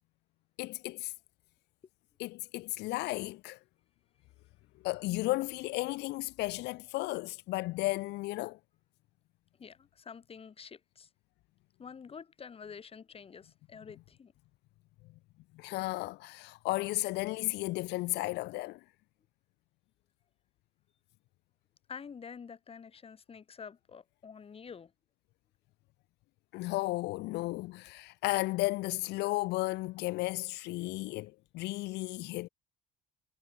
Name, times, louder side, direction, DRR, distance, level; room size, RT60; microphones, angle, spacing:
voice 1, 0.6-1.1 2.2-3.6 4.8-8.6 15.6-18.8 26.5-32.5, left 20 dB, 80° left, 0.6 m, -34 dB
voice 2, 9.6-11.1 11.8-14.3 21.9-24.9, left 6 dB, 35° left, 3.7 m, -48 dB
cardioid pair, 110°, 17 cm